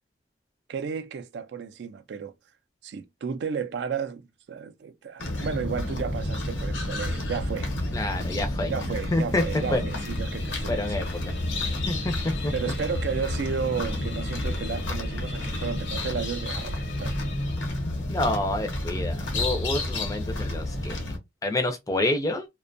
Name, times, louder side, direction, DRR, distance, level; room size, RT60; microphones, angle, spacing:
voice 1, 0.7-2.3 2.8-7.7 8.7-11.1 12.5-17.2, right 6 dB, 70° right, 0.3 m, -33 dB
sound 1, 5.2-21.2, left 1 dB, 90° left, 0.9 m, -30 dB
voice 2, 7.9-8.7 9.1-9.4 9.7-9.8 10.7-11.1 11.9-12.5 18.1-21.0 21.4-22.5, left 2 dB, 20° left, 0.4 m, -28 dB
sound 2, 9.3-18.0, left 4 dB, 65° left, 0.7 m, -42 dB
2.5 x 2.2 x 2.5 m
head